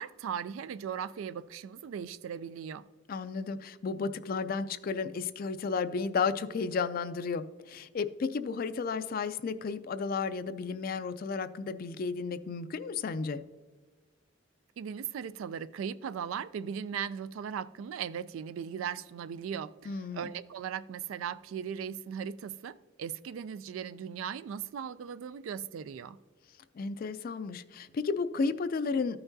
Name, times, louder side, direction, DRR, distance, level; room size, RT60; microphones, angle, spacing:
voice 1, 0.0-2.9 14.8-26.2, right 7 dB, 85° right, 0.3 m, -38 dB
voice 2, 3.1-13.4 19.9-20.3 26.8-29.2, left 5 dB, 45° left, 0.3 m, -33 dB
14.0 x 5.8 x 2.7 m
head